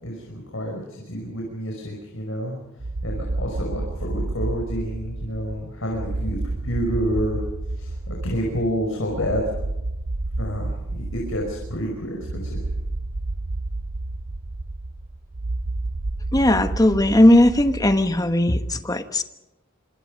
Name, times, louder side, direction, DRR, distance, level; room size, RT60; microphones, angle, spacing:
voice 1, 0.0-2.6 3.0-6.4 6.6-7.4 7.8-9.4 10.4-12.6, equal, 70° left, 0 dB, 5.7 m, -29 dB
sound 1, 2.8-18.3, right 2 dB, 50° right, 0.8 m, -30 dB
voice 2, 16.3-19.2, left 1 dB, 20° left, 8 dB, 1.3 m, -17 dB
26.5 x 26.0 x 5.3 m, 0.92 s
head